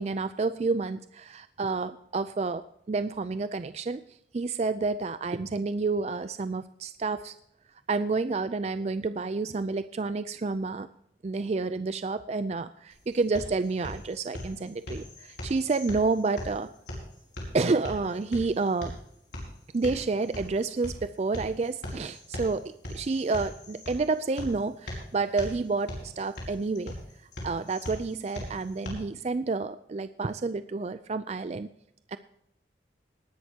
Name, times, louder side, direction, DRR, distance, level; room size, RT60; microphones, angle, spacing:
voice 1, 0.0-4.0 4.3-7.3 7.9-10.9 11.2-16.7 17.5-19.0 19.7-22.6 22.9-26.9 27.4-31.7 32.1-32.2, right 3 dB, 35° right, 12 dB, 0.4 m, -29 dB
sound 1, 12.9-28.9, left 1 dB, 80° left, 4.9 m, -41 dB
19.0 x 11.0 x 2.8 m, 0.75 s
head